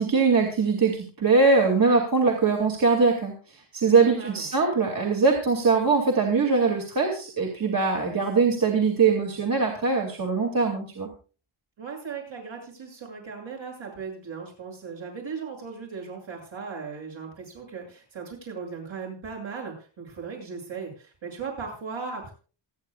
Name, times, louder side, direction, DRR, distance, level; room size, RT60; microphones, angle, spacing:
voice 1, 0.0-11.1, right 4 dB, 45° right, 1 dB, 2.6 m, -22 dB
voice 2, 4.0-4.5 11.8-22.3, right 5 dB, 70° right, 0 dB, 7.9 m, -37 dB
27.0 x 9.7 x 2.4 m, 0.37 s
wide cardioid pair, 160°, 48 cm